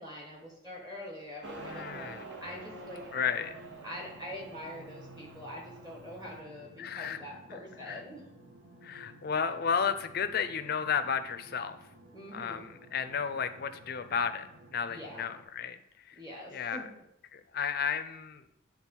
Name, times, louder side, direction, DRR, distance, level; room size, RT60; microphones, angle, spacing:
voice 1, 0.0-3.0 3.8-8.2 12.1-12.7 14.9-15.3 16.2-17.0, equal, 20° right, -1 dB, 1.3 m, -44 dB
Motorcycle, 1.4-6.4, right 2 dB, 55° right, 0.9 m, -47 dB
voice 2, 1.6-2.3 3.1-3.6 6.8-7.3 7.8-8.0 8.8-11.8 12.3-15.8 16.0-16.2 16.5-16.8 17.3-18.5, left 7 dB, 50° left, 10 dB, 0.4 m, -33 dB
sound 1, 2.4-15.4, right 1 dB, 80° right, 1.3 m, -55 dB
8.6 x 3.8 x 4.5 m, 0.81 s
head